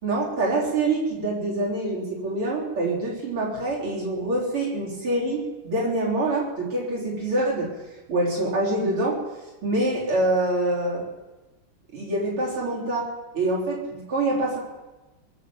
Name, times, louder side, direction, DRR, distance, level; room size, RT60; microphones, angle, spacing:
voice 1, 0.0-7.7 8.1-9.2 9.6-11.0 11.9-13.1 13.3-14.6, right 2 dB, 85° right, -4 dB, 5.0 m, -25 dB
21.5 x 7.3 x 7.8 m, 1.1 s
omnidirectional pair, 2.3 m